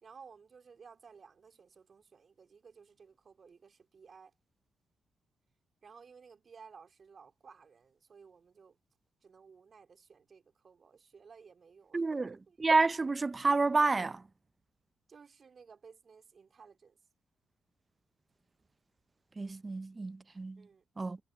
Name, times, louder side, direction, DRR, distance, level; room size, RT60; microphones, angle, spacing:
voice 1, 0.0-4.3 5.8-8.8 9.2-12.8 15.1-17.0 20.6-20.8, right 5 dB, 50° right, 3.2 m, -56 dB
voice 2, 11.9-12.3 12.6-14.2 19.4-20.7 21.0-21.2, right 3 dB, 30° right, 0.6 m, -29 dB
cardioid pair, 75°, 0 cm